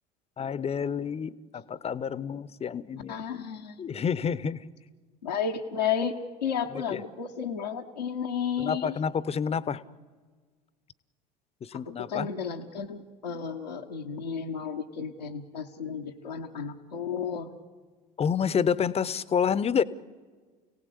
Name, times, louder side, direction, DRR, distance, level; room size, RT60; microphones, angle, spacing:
voice 1, 0.4-3.2 3.8-4.6 6.9-7.0 8.6-9.8 11.6-12.3 18.2-19.8, left 7 dB, 30° left, 18 dB, 0.9 m, -28 dB
voice 2, 3.1-4.0 5.2-9.0 11.7-17.5, left 7 dB, 85° left, -2 dB, 1.2 m, -33 dB
29.5 x 17.5 x 8.4 m, 1.5 s
figure-of-eight pair, 65°, 21 cm